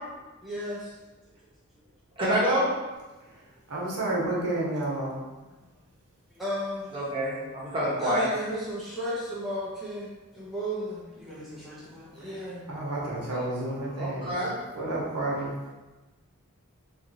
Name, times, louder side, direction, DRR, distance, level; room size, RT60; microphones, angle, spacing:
voice 1, 0.4-1.0 6.3-6.9 8.0-12.7, equal, ahead, -9 dB, 0.5 m, -34 dB
voice 2, 2.2-2.6 6.9-8.3 13.3-13.4 14.0-14.5, equal, 20° right, -9 dB, 0.9 m, -27 dB
voice 3, 3.7-5.2 12.7-14.3 14.8-15.5, right 2 dB, 90° right, -5 dB, 0.8 m, -30 dB
2.9 x 2.5 x 2.6 m, 1.1 s
head